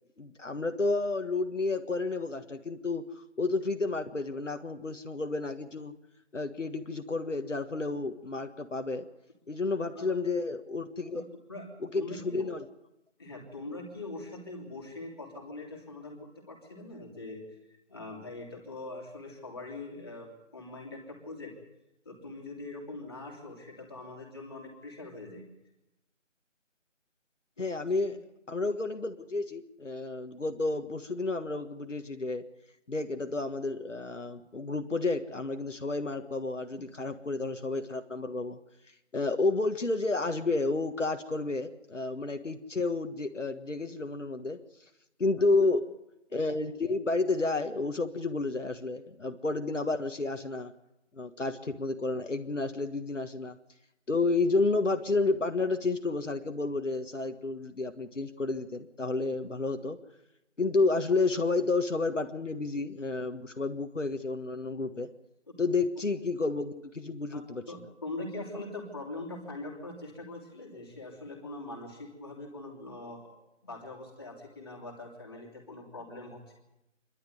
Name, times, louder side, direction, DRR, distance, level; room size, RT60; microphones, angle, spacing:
voice 1, 0.2-3.0 3.4-5.9 6.3-9.0 9.5-11.2 11.9-12.6 27.6-28.2 28.5-32.4 32.9-38.6 39.1-44.6 45.2-45.8 46.3-50.7 51.1-53.6 54.1-60.0 60.6-65.1 65.6-67.6, left 3 dB, 70° left, 6 dB, 1.6 m, -31 dB
voice 2, 11.1-11.7 11.9-12.5 13.2-17.4 17.7-21.5 22.0-25.4 27.6-27.7 28.0-28.1 36.7-36.8 67.3-73.4 73.6-76.5, left 2 dB, 20° left, -2 dB, 3.0 m, -42 dB
26.5 x 11.5 x 9.5 m, 0.92 s
figure-of-eight pair, 175°, 39 cm